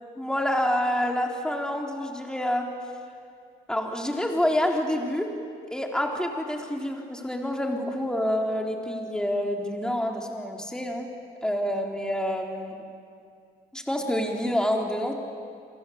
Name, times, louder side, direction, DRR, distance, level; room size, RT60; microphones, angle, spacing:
voice 1, 0.2-2.7 3.7-5.3 5.7-11.1 11.4-12.8 13.7-15.1, left 1 dB, 5° left, 1 dB, 3.9 m, -27 dB
29.5 x 22.5 x 8.3 m, 2.3 s
cardioid pair, 110°, 17 cm